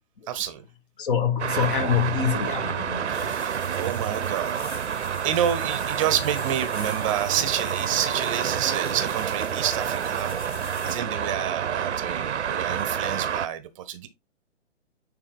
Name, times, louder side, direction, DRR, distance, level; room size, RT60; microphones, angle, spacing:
voice 1, 0.3-0.6 3.1-4.6 5.2-14.1, right 10 dB, 25° right, 0.9 m, -29 dB
voice 2, 1.0-3.3 10.2-10.3, left 7 dB, 45° left, 1.5 m, -25 dB
Traffic noise roadway noise, 1.4-13.5, right 8 dB, 65° right, 0.8 m, -29 dB
sound 1, 3.1-11.0, left 4 dB, 25° left, 2.3 m, -43 dB
10.0 x 3.5 x 3.8 m
figure-of-eight pair, 135°, 37 cm